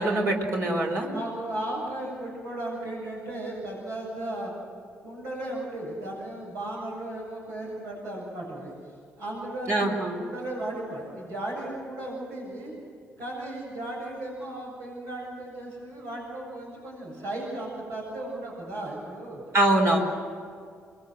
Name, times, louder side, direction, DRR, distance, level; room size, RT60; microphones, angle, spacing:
voice 1, 0.0-1.1 9.7-10.2 19.5-20.0, right 1 dB, 60° right, 1 dB, 4.5 m, -23 dB
voice 2, 1.1-4.5 5.0-8.7 9.2-12.7 13.2-19.4 19.9-20.0, right 1 dB, 85° right, -3 dB, 7.7 m, -35 dB
24.0 x 21.5 x 7.9 m, 2.2 s
supercardioid pair, 60°, 5 cm